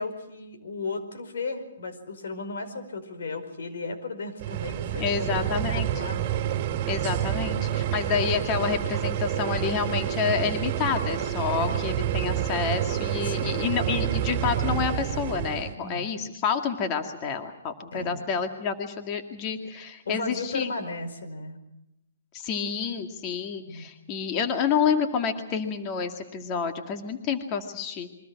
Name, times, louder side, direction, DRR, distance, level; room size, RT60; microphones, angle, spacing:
voice 1, 0.0-6.4 7.5-7.9 11.6-11.8 13.2-13.6 15.7-16.1 17.9-18.2 20.0-21.6 23.6-23.9, left 3 dB, 80° left, 8 dB, 5.1 m, -35 dB
sound 1, 4.4-15.7, right 11 dB, 35° right, 2.7 m, -28 dB
voice 2, 5.0-5.9 6.9-20.7 22.3-28.1, left 6 dB, 25° left, 6 dB, 2.2 m, -29 dB
28.0 x 23.5 x 6.0 m, 0.85 s
hypercardioid pair, 160°, 0 cm